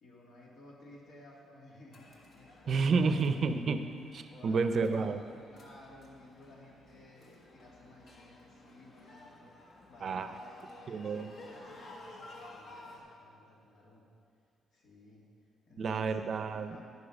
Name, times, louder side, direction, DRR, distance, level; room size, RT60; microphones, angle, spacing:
voice 1, 0.0-3.4 4.3-5.1 5.4-9.5 9.9-14.0 14.7-15.3 15.7-16.2 16.5-16.8, left 1 dB, 75° left, -4 dB, 2.6 m, -55 dB
sound 1, 1.9-13.0, left 2 dB, 60° left, 1.6 m, -54 dB
voice 2, 2.7-5.2 10.0-10.3 10.9-11.3 15.8-16.8, right 4 dB, 55° right, 9 dB, 0.6 m, -30 dB
11.0 x 6.9 x 5.4 m, 2.3 s
cardioid pair, 90°, 0 cm